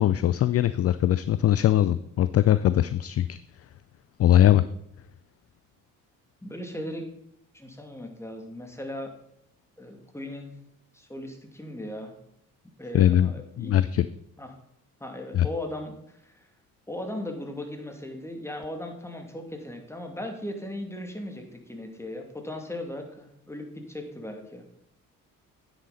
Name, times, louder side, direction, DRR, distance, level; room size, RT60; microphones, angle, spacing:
voice 1, 0.0-3.4 4.2-4.6 12.9-14.1 15.3-15.5, left 12 dB, 35° left, 15 dB, 0.4 m, -21 dB
voice 2, 6.4-7.0 7.5-9.1 9.8-10.5 10.9-12.1 12.8-13.8 14.4-14.5 15.0-15.9 16.2-16.4 16.9-24.6, left 1 dB, 5° left, 4 dB, 2.3 m, -37 dB
9.6 x 9.3 x 4.0 m, 0.77 s
hypercardioid pair, 45°, 44 cm